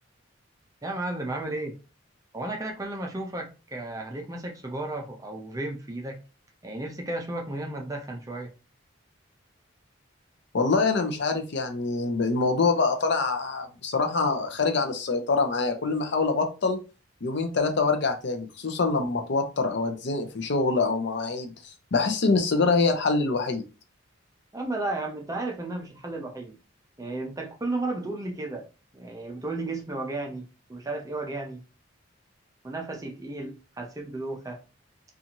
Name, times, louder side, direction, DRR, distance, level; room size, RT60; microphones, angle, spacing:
voice 1, 0.8-1.8 2.3-6.2 6.6-8.5 24.5-26.6 27.0-28.7 28.9-31.6 32.6-34.6, right 2 dB, 15° right, 0.4 m, -33 dB
voice 2, 10.5-16.8 17.2-23.6, left 3 dB, 55° left, 0.5 m, -25 dB
2.6 x 2.4 x 2.8 m
head